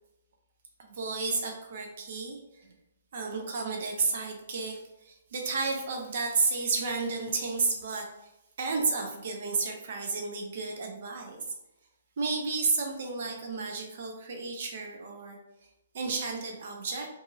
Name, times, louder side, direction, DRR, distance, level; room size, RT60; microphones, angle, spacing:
voice 1, 0.8-2.4 3.1-8.1 8.6-11.5 12.2-15.4 15.9-17.1, right 4 dB, 55° right, 1 dB, 0.6 m, -32 dB
2.7 x 2.6 x 2.3 m, 0.88 s
figure-of-eight pair, 125°, 0 cm